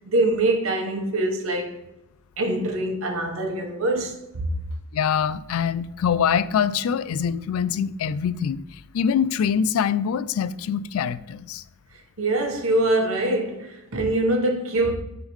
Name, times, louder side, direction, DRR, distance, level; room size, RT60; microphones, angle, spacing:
voice 1, 0.1-1.8 2.4-4.5 12.2-15.0, right 2 dB, 80° right, 1.1 m, -24 dB
voice 2, 4.9-8.6 8.9-11.6, left 7 dB, 85° left, 0.3 m, -24 dB
9.8 x 3.7 x 3.1 m
head